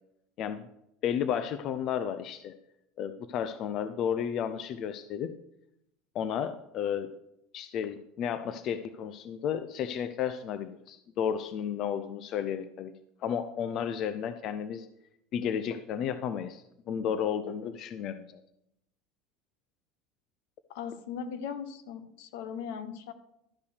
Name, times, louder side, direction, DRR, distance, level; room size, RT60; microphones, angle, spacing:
voice 1, 0.4-0.7 1.0-2.5 3.0-5.3 6.1-7.1 7.5-12.9 13.2-14.9 15.3-18.4, left 8 dB, 40° left, 11 dB, 0.4 m, -32 dB
voice 2, 20.7-23.1, left 7 dB, 75° left, 12 dB, 1.0 m, -38 dB
12.0 x 5.7 x 6.5 m, 0.83 s
cardioid pair, 165°, 0 cm